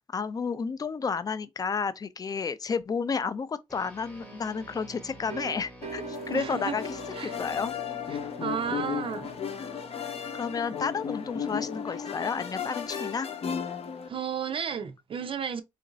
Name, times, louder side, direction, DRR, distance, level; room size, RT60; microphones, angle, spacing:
voice 1, 0.1-7.7 10.3-13.3, left 5 dB, 35° left, 0.3 m, -31 dB
sound 1, 3.7-13.3, left 1 dB, 15° left, 0.8 m, -51 dB
sound 2, 4.2-9.9, right 7 dB, 90° right, 0.8 m, -45 dB
sound 3, 5.8-14.1, left 7 dB, 70° left, 0.7 m, -35 dB
voice 2, 6.3-6.8 7.1-7.4 8.1-9.3 14.1-15.6, right 7 dB, 55° right, 0.4 m, -33 dB
3.0 x 2.5 x 3.8 m
wide cardioid pair, 155°, 11 cm